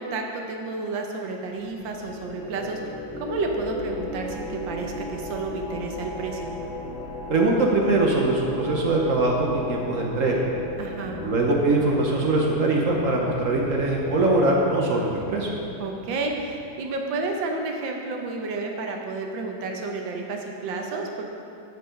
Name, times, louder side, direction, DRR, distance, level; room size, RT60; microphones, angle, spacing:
voice 1, 0.0-2.8 3.2-6.5 10.8-11.2 15.8-21.3, right 3 dB, 85° right, 2 dB, 1.7 m, -31 dB
sound 1, 1.6-17.0, left 1 dB, 45° left, 1.7 m, -36 dB
voice 2, 7.3-10.4 11.2-15.5, right 2 dB, 55° right, -1 dB, 1.1 m, -22 dB
12.0 x 4.8 x 5.1 m, 2.6 s
omnidirectional pair, 2.0 m